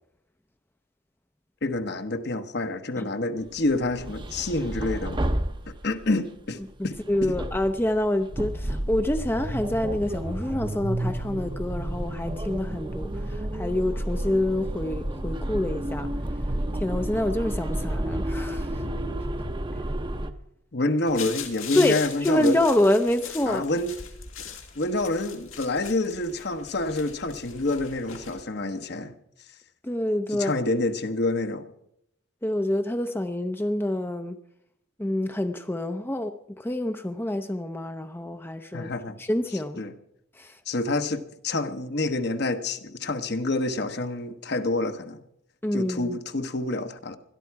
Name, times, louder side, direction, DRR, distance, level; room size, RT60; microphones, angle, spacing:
voice 1, 1.6-5.2 5.7-7.4 20.7-22.6 23.4-24.0 24.8-29.2 30.3-31.7 38.7-39.2 39.8-39.9 40.7-45.2 45.7-47.2, left 2 dB, 55° left, 1.1 m, -28 dB
sound 1, 3.6-6.2 6.9-20.3, right 1 dB, 25° right, 0.8 m, -31 dB
voice 2, 7.1-16.1 16.7-18.7 21.8-23.6 29.8-30.5 32.4-34.4 35.0-38.9 39.2-39.8 40.4-40.6 45.6-46.2, left 1 dB, 10° left, 0.6 m, -27 dB
sound 2, 21.1-28.4, left 8 dB, 85° left, 2.4 m, -40 dB
21.0 x 13.0 x 4.7 m
head